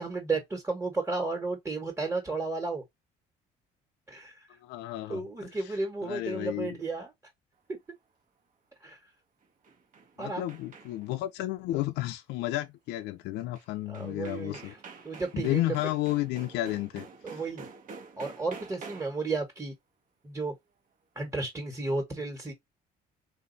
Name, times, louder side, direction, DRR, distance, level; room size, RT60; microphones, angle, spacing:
voice 1, 0.0-2.8 4.1-4.5 5.1-7.1 8.8-9.0 10.2-10.4 13.9-14.8 15.0-15.7 17.2-17.7 18.2-19.7 20.2-20.5 21.1-22.5, right 3 dB, 15° right, 1.4 m, -33 dB
voice 2, 4.6-5.2 6.0-6.8 10.2-14.7 15.3-17.1, left 16 dB, 85° left, 0.5 m, -32 dB
sound 1, 9.4-11.2 13.6-13.7 13.9-19.3, right 5 dB, 55° right, 1.1 m, -48 dB
4.0 x 2.6 x 4.0 m
cardioid pair, 110°, 17 cm